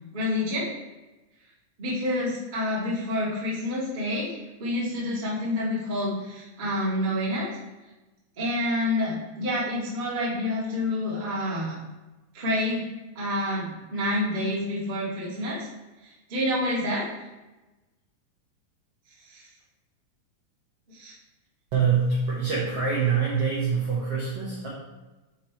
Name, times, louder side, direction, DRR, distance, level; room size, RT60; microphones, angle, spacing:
voice 1, 0.1-0.7 1.8-7.5 8.4-11.8 12.3-12.8 13.1-15.6 16.0-17.0 19.2-19.5 20.9-21.1, left 1 dB, 30° right, -7 dB, 0.8 m, -28 dB
voice 2, 21.7-24.7, right 6 dB, 70° right, -5 dB, 1.4 m, -25 dB
5.8 x 4.2 x 4.5 m, 1.1 s
omnidirectional pair, 4.0 m